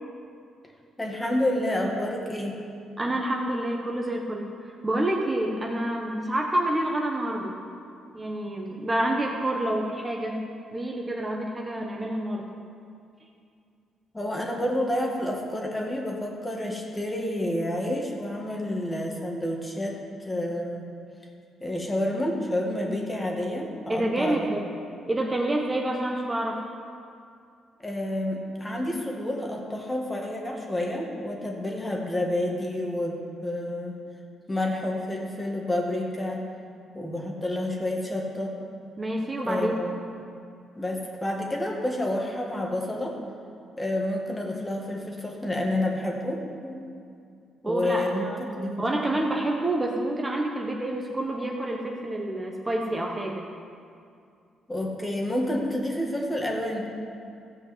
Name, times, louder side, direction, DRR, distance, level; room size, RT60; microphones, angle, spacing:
voice 1, 1.0-2.6 14.1-20.0 20.3-20.8 21.6-24.5 27.8-34.0 34.5-36.4 36.9-38.6 39.4-39.9 40.8-43.2 43.8-46.8 47.6-48.9 54.7-56.9, left 1 dB, 15° left, 0 dB, 2.0 m, -29 dB
voice 2, 3.0-7.5 8.1-10.4 10.7-12.4 23.9-24.6 25.1-26.6 39.0-39.9 47.6-48.4 48.8-53.4, right 1 dB, 20° right, 0 dB, 1.3 m, -28 dB
14.5 x 5.3 x 8.2 m, 2.4 s
cardioid pair, 90°, 0 cm